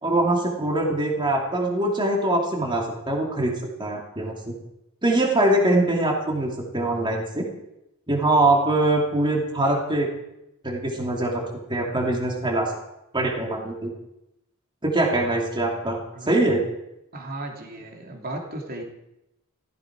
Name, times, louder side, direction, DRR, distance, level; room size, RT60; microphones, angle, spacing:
voice 1, 0.0-4.5 5.0-7.5 8.1-10.1 10.6-11.4 11.7-12.7 13.1-13.9 14.8-16.0 16.2-16.6, right 1 dB, 20° right, 0 dB, 2.7 m, -23 dB
voice 2, 17.1-18.8, right 1 dB, 45° right, 2 dB, 2.8 m, -35 dB
15.5 x 15.0 x 4.8 m, 0.88 s
head